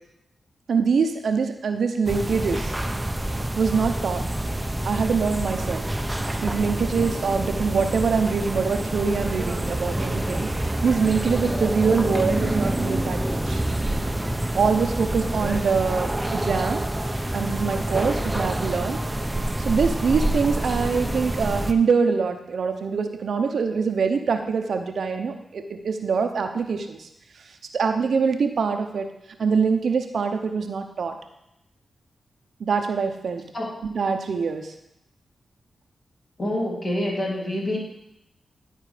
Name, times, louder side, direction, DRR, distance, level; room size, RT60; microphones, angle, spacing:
voice 1, 0.7-2.7 3.6-4.2 4.8-5.9 6.4-13.6 14.5-16.8 17.3-19.0 19.6-27.1 27.7-29.1 29.4-31.2 32.6-33.4 33.9-34.7, right 5 dB, 75° right, 6 dB, 0.8 m, -24 dB
sound 1, 2.1-21.7, right 1 dB, 15° right, 0.7 m, -27 dB
voice 2, 36.4-37.8, left 1 dB, 50° left, -5 dB, 3.5 m, -26 dB
11.0 x 4.5 x 5.0 m, 0.81 s
cardioid pair, 45°, 0 cm